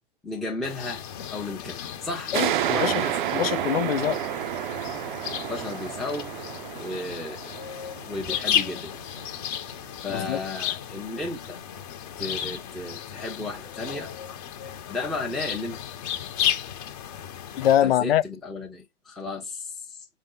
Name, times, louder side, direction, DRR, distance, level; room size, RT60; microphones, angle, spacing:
voice 1, 0.2-1.0 1.3-2.3 2.7-3.2 5.5-7.5 8.0-8.9 10.0-11.6 12.2-14.1 14.9-15.8 17.8-20.1, left 2 dB, ahead, 0.6 m, -34 dB
sound 1, 0.6-17.8, left 10 dB, 40° left, 1.0 m, -34 dB
voice 2, 2.3-3.0 3.3-4.2 10.1-10.4 17.6-18.2, left 11 dB, 80° left, 0.5 m, -23 dB
sound 2, 2.3-9.5, right 13 dB, 60° right, 0.5 m, -30 dB
5.1 x 2.0 x 3.9 m
hypercardioid pair, 120°, 29 cm